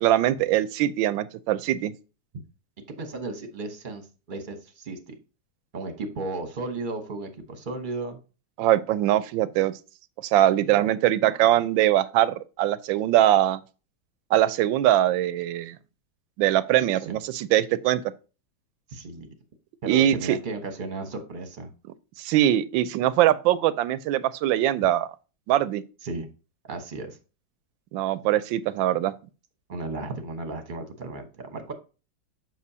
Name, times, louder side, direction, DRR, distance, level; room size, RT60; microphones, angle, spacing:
voice 1, 0.0-1.9 8.6-9.7 10.2-13.6 14.3-15.8 16.4-18.0 19.8-20.4 22.2-25.1 25.5-25.8 27.9-29.1, right 13 dB, 85° right, 1.3 m, -22 dB
voice 2, 3.0-5.2 5.7-8.2 16.8-17.2 18.9-19.3 19.8-21.7 26.0-26.3 26.7-27.2 29.7-31.7, right 3 dB, 35° right, 1.0 m, -34 dB
7.4 x 6.0 x 2.8 m
omnidirectional pair, 2.0 m